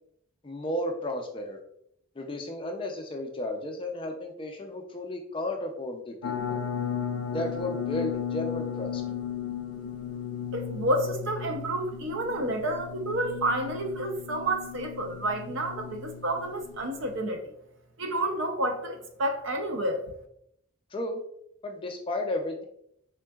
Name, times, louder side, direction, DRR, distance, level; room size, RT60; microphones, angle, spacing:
voice 1, 0.4-1.6 2.2-6.6 7.3-9.0 20.9-21.2 21.6-22.7, left 1 dB, 25° left, 3 dB, 0.4 m, -33 dB
sound 1, 6.2-17.2, left 8 dB, 85° left, 0.4 m, -35 dB
voice 2, 10.5-17.4 18.0-20.0, right 1 dB, 60° right, 4 dB, 0.6 m, -30 dB
3.7 x 3.5 x 2.3 m, 0.72 s
head